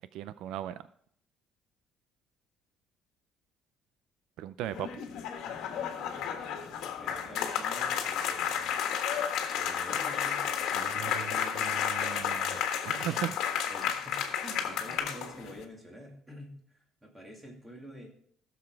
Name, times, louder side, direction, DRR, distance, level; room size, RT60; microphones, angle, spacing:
voice 1, 0.1-0.8 4.4-5.0 10.7-13.4, right 12 dB, 75° right, 14 dB, 0.4 m, -38 dB
sound 1, 4.6-15.6, left 8 dB, 70° left, 1.5 m, -32 dB
voice 2, 5.7-6.5 7.0-8.7 9.5-11.8 13.7-16.5 17.0-18.1, equal, 10° right, 0 dB, 2.4 m, -47 dB
sound 2, 8.6-15.0, left 3 dB, 10° left, 2.6 m, -52 dB
15.5 x 7.1 x 4.7 m, 0.63 s
cardioid pair, 170°, 0 cm